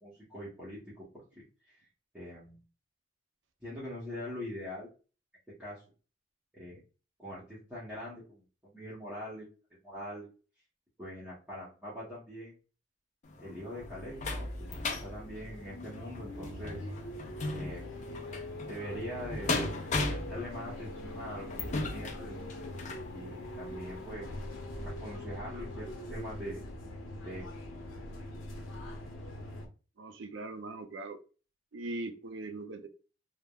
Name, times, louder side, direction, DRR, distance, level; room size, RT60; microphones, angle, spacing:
voice 1, 0.0-1.9 2.1-2.6 3.6-4.9 5.5-5.8 6.5-6.8 7.2-9.5 9.8-10.3 11.0-12.5 13.4-14.7 15.0-16.8 17.5-17.9 18.7-22.4 23.1-24.3 24.8-26.6 27.2-27.5, equal, 5° right, -10 dB, 0.9 m, -43 dB
sound 1, 13.3-23.1 23.7-23.8 24.1-24.2, left 3 dB, 35° left, 0.4 m, -37 dB
sound 2, 13.8-29.7, left 1 dB, 80° left, 0.6 m, -43 dB
voice 2, 30.0-31.2 31.7-32.9, right 2 dB, 70° right, 7 dB, 0.5 m, -40 dB
3.4 x 2.0 x 2.2 m, 0.34 s
head